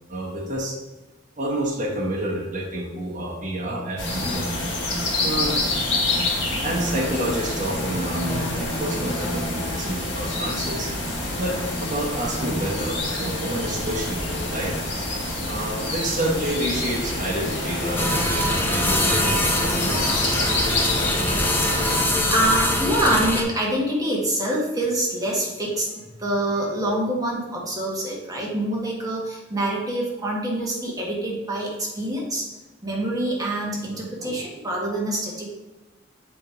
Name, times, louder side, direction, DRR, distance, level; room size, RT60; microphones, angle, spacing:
voice 1, 0.1-0.8 1.4-4.5 5.2-5.6 6.6-10.9 11.4-14.8 15.4-20.1, right 1 dB, 45° right, -2 dB, 1.2 m, -28 dB
sound 1, 4.0-22.0, left 1 dB, 80° left, 2.0 m, -27 dB
sound 2, 18.0-23.4, left 1 dB, 10° left, 0.7 m, -23 dB
voice 2, 22.3-32.5 32.8-35.5, right 1 dB, 20° right, -3 dB, 1.4 m, -25 dB
7.7 x 3.1 x 4.8 m, 1.1 s
head